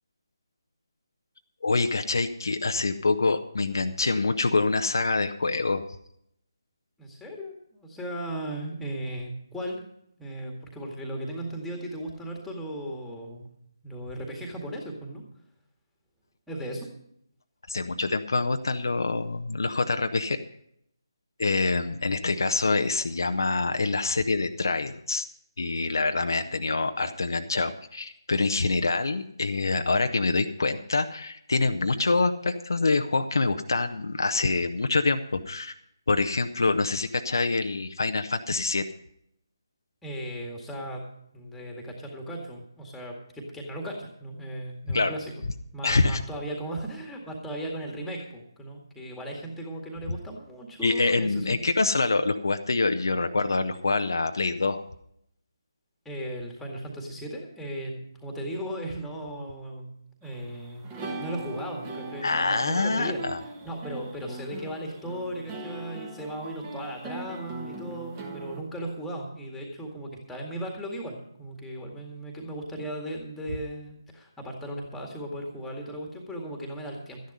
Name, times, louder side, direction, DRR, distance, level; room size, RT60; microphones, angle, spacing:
voice 1, 1.6-5.8 17.7-20.4 21.4-25.2 25.6-35.7 36.1-38.8 44.9-45.1 45.8-46.2 50.8-54.8 62.2-63.4, left 3 dB, 55° left, 7 dB, 0.8 m, -25 dB
voice 2, 7.0-9.8 10.2-13.5 13.8-15.2 16.5-16.9 40.0-41.0 41.3-45.3 45.7-51.6 56.1-59.9 60.2-63.2 63.6-77.2, right 1 dB, ahead, 1 dB, 2.0 m, -36 dB
sound 1, 60.2-68.6, right 2 dB, 15° right, 1.5 m, -40 dB
13.0 x 10.5 x 5.5 m, 0.72 s
figure-of-eight pair, 150°, 2 cm